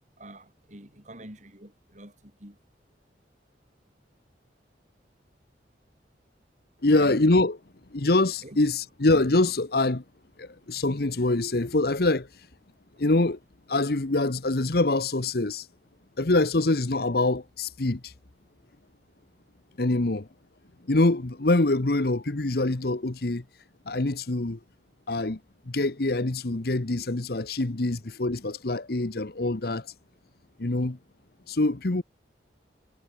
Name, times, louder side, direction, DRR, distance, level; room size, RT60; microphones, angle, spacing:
voice 1, 0.2-2.6 6.9-7.2 8.4-8.6, right 1 dB, 40° right, 7.2 m, -45 dB
voice 2, 6.8-7.6 7.9-10.0 10.4-12.3 13.0-13.4 13.7-15.7 16.2-18.1 19.8-20.3 20.9-23.4 23.9-24.6 25.1-25.4 25.7-29.9 30.6-31.0 31.5-32.0, left 2 dB, 55° left, 1.1 m, -24 dB
head